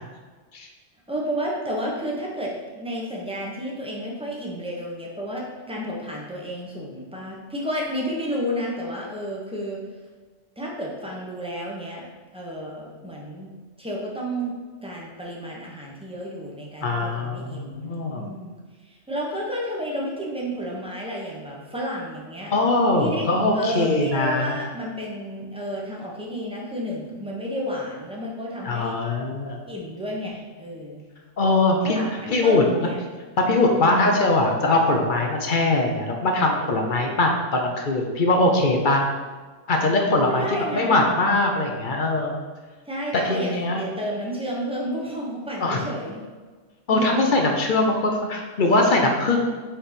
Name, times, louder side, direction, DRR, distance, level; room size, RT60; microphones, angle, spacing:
voice 1, 1.1-9.8 10.6-12.1 12.3-13.5 13.8-14.5 14.8-18.5 18.9-22.5 23.0-23.3 23.5-29.0 29.7-31.0 31.8-32.1 32.4-33.0 33.6-34.0 40.3-41.1 42.9-46.2 46.9-47.2, equal, 5° right, -3 dB, 1.0 m, -31 dB
voice 2, 16.8-18.2 22.5-24.6 28.6-29.6 31.4-32.0 32.3-32.9 33.4-39.0 39.7-42.3 43.1-43.8 45.6-45.8 46.9-49.5, left 2 dB, 50° left, 2 dB, 0.7 m, -21 dB
4.5 x 4.3 x 5.0 m, 1.4 s
omnidirectional pair, 1.3 m